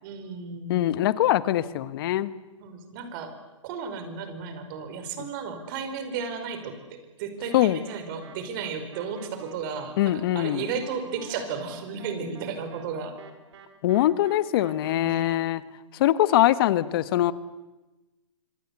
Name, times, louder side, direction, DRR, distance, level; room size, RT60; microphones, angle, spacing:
voice 1, 0.0-0.9 2.6-3.4 3.6-9.9 10.3-13.1 14.9-15.4, right 5 dB, 40° right, 4.9 m, -34 dB
voice 2, 0.7-2.3 7.5-7.8 10.0-10.7 13.8-15.6 15.9-17.3, left 14 dB, 45° left, 1.4 m, -23 dB
sound 1, 7.5-15.0, right 8 dB, 60° right, 4.1 m, -49 dB
26.0 x 25.0 x 8.3 m
hypercardioid pair, 145°, 16 cm